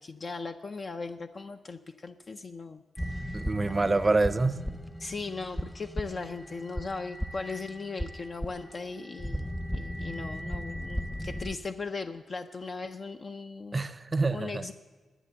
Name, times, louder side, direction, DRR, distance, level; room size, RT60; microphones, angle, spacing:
voice 1, 0.0-3.4 3.6-4.0 5.0-13.9 14.3-14.7, left 4 dB, 45° left, 6 dB, 0.5 m, -38 dB
sound 1, 3.0-11.6, equal, 5° left, 0.7 m, -37 dB
voice 2, 3.3-4.6 13.7-14.6, right 3 dB, 25° right, 14 dB, 0.6 m, -26 dB
11.0 x 9.9 x 7.4 m, 1.4 s
cardioid pair, 80°, 0 cm